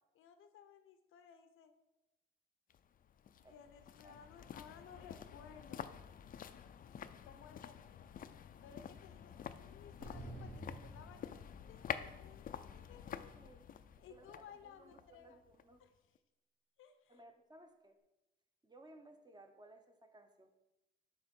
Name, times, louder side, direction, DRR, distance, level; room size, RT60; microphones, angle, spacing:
voice 1, 0.1-1.7 3.5-5.9 6.9-8.2 8.6-13.3 14.0-15.4 15.8-15.9 16.8-17.2, left 7 dB, 85° left, 8 dB, 0.7 m, -59 dB
sound 1, 2.7-15.9 16.1-16.2, left 8 dB, 45° left, 0.4 m, -49 dB
sound 2, 10.0-11.9, right 1 dB, 60° right, 2.5 m, -50 dB
voice 2, 14.1-15.8 17.1-18.0 18.6-20.5, right 1 dB, 20° right, 6 dB, 0.8 m, -60 dB
6.5 x 3.6 x 5.3 m, 0.94 s
cardioid pair, 100°, 21 cm